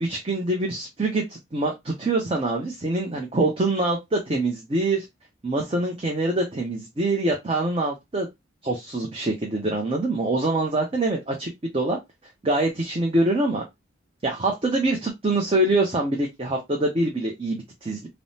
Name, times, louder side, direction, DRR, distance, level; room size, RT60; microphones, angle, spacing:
voice 1, 0.0-5.1 5.4-8.3 8.6-12.0 12.4-13.6 14.2-18.1, right 2 dB, 30° right, 1 dB, 0.5 m, -25 dB
3.4 x 2.0 x 2.7 m, 0.19 s
head